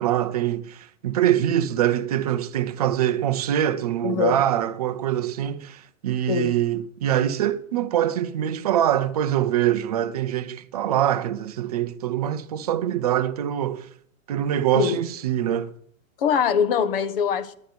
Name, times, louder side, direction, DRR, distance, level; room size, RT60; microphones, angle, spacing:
voice 1, 0.0-13.9 14.3-15.7, right 11 dB, 30° right, 0.5 m, -24 dB
voice 2, 4.0-4.4 6.3-6.5 14.7-15.0 16.2-17.5, left 7 dB, 40° left, 1.1 m, -23 dB
11.5 x 8.6 x 9.3 m
hypercardioid pair, 165°, 42 cm